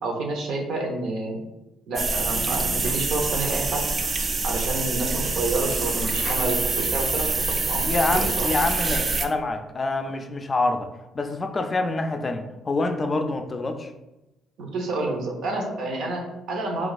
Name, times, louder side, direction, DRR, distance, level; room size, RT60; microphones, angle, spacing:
voice 1, 0.0-1.4 1.9-3.8 4.4-7.8 8.1-8.5 14.6-16.9, right 2 dB, 70° right, 1 dB, 0.7 m, -29 dB
sound 1, 2.0-9.3, right 3 dB, 40° right, 0.3 m, -26 dB
sound 2, 2.7-8.0, equal, 90° right, 1.1 m, -43 dB
voice 2, 7.8-10.9 11.1-13.9, left 2 dB, 35° left, 7 dB, 0.4 m, -26 dB
2.3 x 2.3 x 4.0 m, 0.97 s
hypercardioid pair, 55°, 0 cm